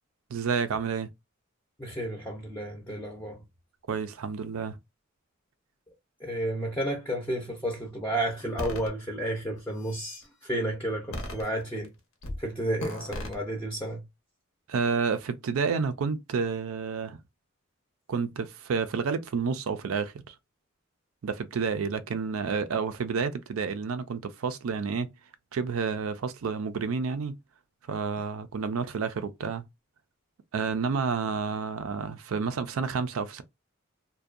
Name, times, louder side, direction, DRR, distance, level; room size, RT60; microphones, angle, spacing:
voice 1, 0.3-1.1 3.9-4.8 14.7-17.2 18.1-20.3 21.2-25.1 25.5-27.4 27.9-29.6 30.5-33.4, right 5 dB, 85° right, 0.4 m, -30 dB
voice 2, 1.8-3.4 6.2-11.9 12.4-14.0, right 1 dB, 10° left, 0.5 m, -32 dB
sound 1, 8.6-8.9 9.6-10.2 11.1-11.9 12.2-12.4 12.8-13.4, left 1 dB, 85° left, 0.8 m, -36 dB
2.6 x 2.2 x 2.4 m
head